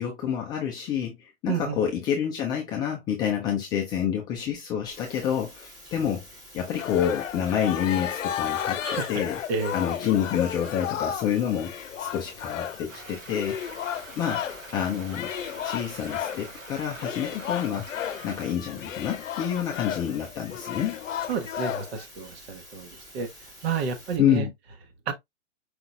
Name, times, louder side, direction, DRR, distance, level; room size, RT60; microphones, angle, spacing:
voice 1, 0.0-6.3 6.5-9.4 9.7-11.7 12.0-13.6 14.2-15.3 15.6-17.9 18.2-21.0 24.2-24.5, left 9 dB, 10° left, 0.4 m, -28 dB
voice 2, 1.5-1.8 8.8-9.1 9.5-9.7 21.3-22.9 23.1-23.3 23.6-24.5 25.1-25.2, right 6 dB, 55° right, 1.2 m, -30 dB
sound 1, 4.9-24.2, equal, 10° right, 1.2 m, -49 dB
sound 2, 6.8-14.7 15.1-16.5 17.0-22.0, left 10 dB, 75° left, 0.7 m, -33 dB
Stream, 12.9-18.5, right 2 dB, 90° right, 2.5 m, -45 dB
5.0 x 3.9 x 2.2 m
hypercardioid pair, 125°, 38 cm